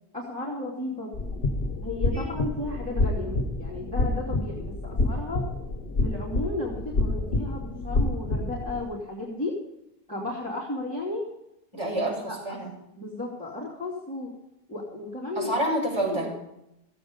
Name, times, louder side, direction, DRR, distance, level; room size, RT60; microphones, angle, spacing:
voice 1, 0.1-1.1 1.8-5.4 6.0-9.5 10.1-11.2 12.3-12.6 13.0-14.3 14.7-15.5 16.1-16.3, left 2 dB, 10° left, -5 dB, 2.8 m, -34 dB
sound 1, 1.1-8.8, left 2 dB, 80° left, 1.4 m, -28 dB
voice 2, 11.7-12.7 15.4-16.3, right 1 dB, 25° right, -5 dB, 5.7 m, -28 dB
15.5 x 8.6 x 5.2 m, 0.85 s
omnidirectional pair, 1.0 m